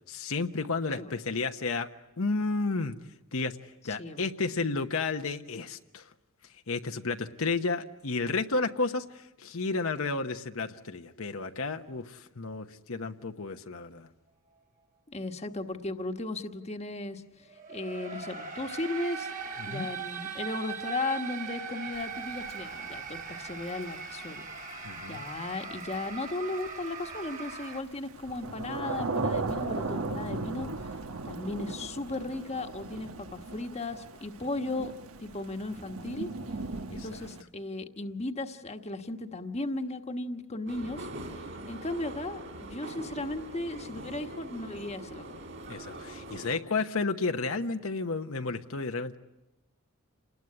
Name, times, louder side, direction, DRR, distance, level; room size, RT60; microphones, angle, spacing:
voice 1, 0.1-1.9 2.2-3.0 3.3-6.1 6.7-14.1 19.6-19.9 24.8-25.2 36.9-37.2 45.7-49.2, left 3 dB, 70° left, 5 dB, 1.0 m, -32 dB
voice 2, 15.1-19.3 19.7-24.5 25.1-30.7 31.2-34.9 35.2-36.3 36.9-41.1 41.7-45.4, left 2 dB, 30° left, 6 dB, 1.3 m, -36 dB
sound 1, 17.5-27.8, right 6 dB, 35° right, 2.0 m, -40 dB
Thunder / Rain, 21.9-37.4, right 3 dB, 75° right, 1.2 m, -38 dB
sound 2, 40.7-46.6, right 1 dB, 55° right, 3.4 m, -43 dB
28.5 x 20.0 x 9.7 m, 0.98 s
head